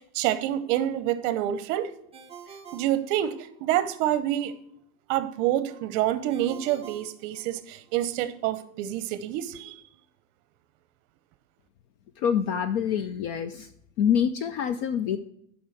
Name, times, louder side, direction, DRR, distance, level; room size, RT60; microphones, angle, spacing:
voice 1, 0.0-1.9 2.7-4.6 5.1-9.8, right 12 dB, 55° right, 0.8 m, -27 dB
Ringtone, 2.1-3.8 6.3-8.0, right 6 dB, 15° right, 0.5 m, -47 dB
voice 2, 12.2-13.7 14.0-15.2, left 8 dB, 40° left, 0.4 m, -26 dB
7.4 x 5.6 x 5.7 m
supercardioid pair, 150°, 45 cm